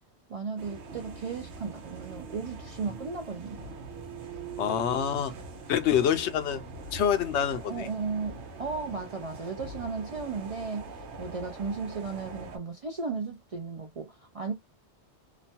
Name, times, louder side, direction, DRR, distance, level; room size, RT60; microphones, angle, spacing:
voice 1, 0.3-3.7 7.7-14.5, right 4 dB, 55° right, 0.4 m, -35 dB
sound 1, 0.6-12.6, right 4 dB, 85° right, 1.1 m, -43 dB
voice 2, 4.6-5.3 5.7-6.6 6.9-7.9, left 9 dB, 80° left, 0.8 m, -26 dB
2.9 x 2.2 x 2.7 m
omnidirectional pair, 1.1 m